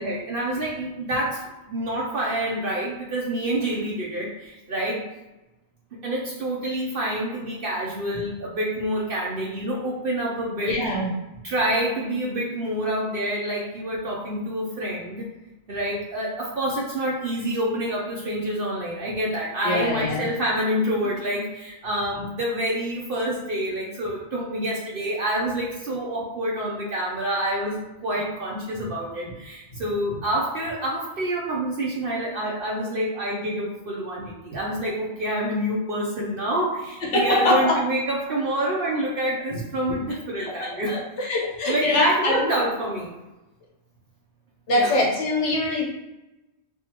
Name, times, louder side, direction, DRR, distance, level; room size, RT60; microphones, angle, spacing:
voice 1, 0.0-5.0 5.9-10.8 11.4-15.3 15.7-41.3 41.6-43.1 44.7-45.0, right 1 dB, 55° right, -4 dB, 0.9 m, -27 dB
voice 2, 10.6-11.1 19.6-20.3 37.1-37.7 40.4-42.5 44.7-45.8, left 1 dB, 90° left, -3 dB, 1.5 m, -23 dB
3.7 x 3.5 x 2.9 m, 1.0 s
omnidirectional pair, 1.2 m